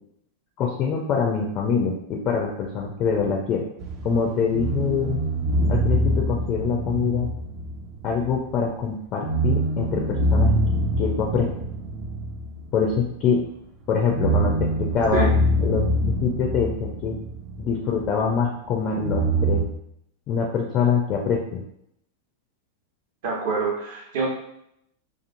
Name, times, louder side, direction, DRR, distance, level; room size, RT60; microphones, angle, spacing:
voice 1, 0.6-3.6 4.0-5.2 5.7-7.3 8.0-10.5 11.0-11.5 12.7-13.4 13.9-15.3 15.6-17.2 17.6-19.7 20.3-21.6, left 6 dB, 35° left, 0 dB, 0.4 m, -24 dB
sound 1, 3.8-8.5 8.7-8.9 9.2-13.4 13.9-18.2 19.0-19.7, right 1 dB, 35° right, 0.4 m, -25 dB
voice 2, 23.2-24.3, right 4 dB, 55° right, -1 dB, 0.7 m, -26 dB
2.5 x 2.4 x 2.5 m, 0.75 s
figure-of-eight pair, 90°, 0 cm